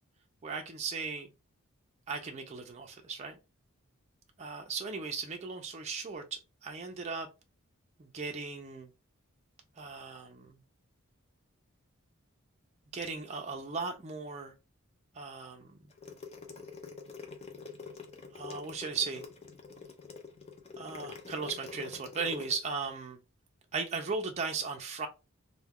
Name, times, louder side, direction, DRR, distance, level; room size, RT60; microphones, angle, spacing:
voice 1, 0.4-1.3 2.1-3.3 4.4-7.3 8.0-8.9 9.8-10.6 12.9-14.5 15.1-15.8 18.3-19.2 20.8-23.2 23.7-25.1, right 4 dB, 30° right, 0.4 m, -37 dB
sound 1, 15.9-22.5, left 5 dB, 30° left, 0.4 m, -45 dB
2.2 x 2.1 x 3.4 m
head